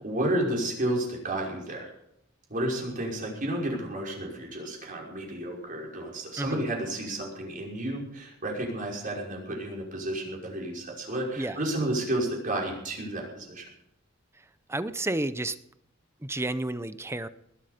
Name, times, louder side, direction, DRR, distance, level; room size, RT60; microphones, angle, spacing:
voice 1, 0.0-1.9 2.5-13.7, right 1 dB, 45° right, -1 dB, 5.7 m, -31 dB
voice 2, 14.3-15.6 16.2-17.3, right 2 dB, 15° right, 13 dB, 0.7 m, -31 dB
20.0 x 12.0 x 5.2 m, 0.77 s
head